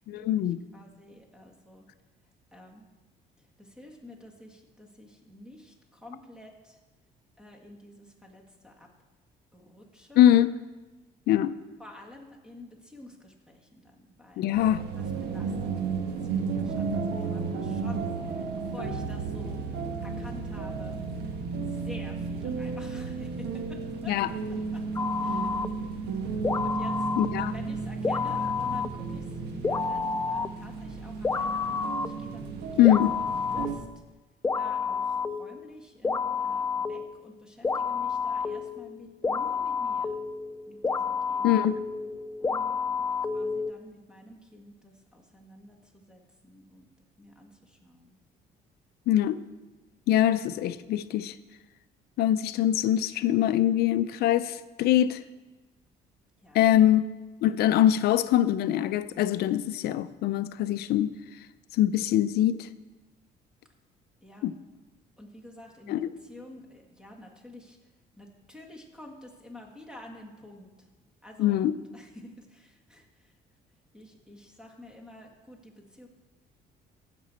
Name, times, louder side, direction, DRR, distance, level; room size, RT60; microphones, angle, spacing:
voice 1, 0.1-0.6 10.2-10.5 11.3-11.5 14.4-14.8 24.1-24.3 27.2-27.5 32.8-33.2 41.4-41.8 49.1-49.4 50.1-51.4 52.2-55.2 56.5-57.0 57.4-61.1 61.8-62.7 64.4-64.5 65.9-66.1 71.4-71.7, left 12 dB, 70° left, 14 dB, 0.5 m, -23 dB
voice 2, 0.7-1.9 2.5-2.8 3.4-6.8 7.4-8.9 9.5-10.2 11.8-14.6 15.0-19.7 20.0-21.0 21.7-24.1 24.7-24.8 25.2-25.7 26.6-33.0 33.3-33.9 34.5-40.2 40.7-41.6 42.4-46.9 47.2-48.2 56.4-56.8 64.2-64.5 65.2-67.8 68.2-70.9 71.2-71.6 71.9-73.3 73.9-76.1, left 1 dB, 5° right, 1 dB, 1.8 m, -49 dB
sound 1, 14.5-33.8, right 4 dB, 75° right, 1.4 m, -33 dB
sound 2, 25.0-25.7 26.4-27.3 28.0-28.9 29.6-30.5 31.2-32.1 32.8-33.7 34.4-35.6 36.0-37.3 37.6-43.7, left 5 dB, 15° left, 0.4 m, -30 dB
15.0 x 6.1 x 4.2 m, 1.2 s
cardioid pair, 110°, 17 cm